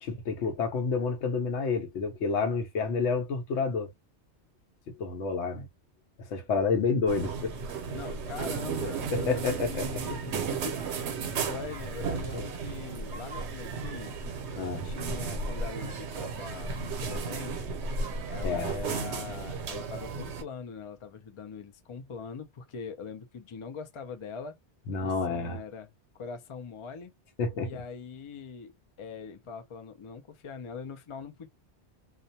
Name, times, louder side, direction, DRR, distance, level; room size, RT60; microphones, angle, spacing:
voice 1, 0.0-3.9 5.0-5.7 6.3-7.5 9.1-9.9 12.3-12.5 14.6-14.9 18.4-18.8 24.9-25.6 27.4-27.8, left 4 dB, 80° left, 0.9 m, -29 dB
sound 1, 7.1-20.4, right 4 dB, 75° right, 0.9 m, -34 dB
voice 2, 7.9-14.2 14.8-17.8 18.3-24.6 25.0-27.1 27.6-28.7 29.0-31.5, left 5 dB, 55° left, 0.3 m, -42 dB
2.3 x 2.1 x 2.6 m
omnidirectional pair, 1.2 m